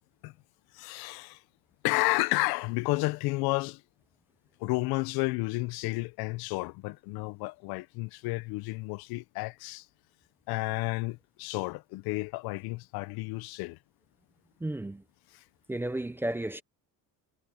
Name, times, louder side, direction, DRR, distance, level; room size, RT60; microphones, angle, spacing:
voice 1, 0.7-1.4 1.8-3.8 4.6-9.9 10.5-13.8 15.3-15.4, left 23 dB, 80° left, 0.6 m, -31 dB
voice 2, 14.6-15.0 15.7-16.6, right 1 dB, 5° right, 0.5 m, -33 dB
cardioid pair, 170°, 37 cm